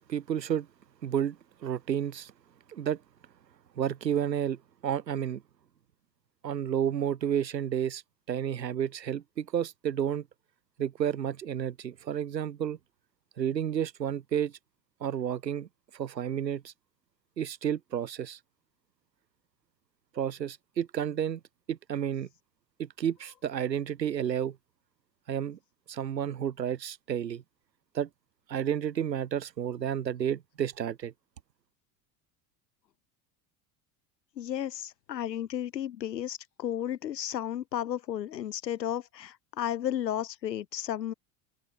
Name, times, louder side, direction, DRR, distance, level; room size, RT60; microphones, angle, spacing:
voice 1, 0.1-0.7 1.0-2.3 2.7-3.0 3.7-5.4 6.4-8.0 8.3-10.3 10.8-12.8 13.4-14.5 15.0-15.7 15.9-16.7 17.4-18.4 20.1-21.4 21.7-22.3 22.8-24.6 25.3-25.6 25.9-27.4 27.9-28.1 28.5-31.1, right 9 dB, 85° right, 1.4 m, -31 dB
voice 2, 34.4-41.1, left 11 dB, 85° left, 1.1 m, -33 dB
figure-of-eight pair, 75°, 49 cm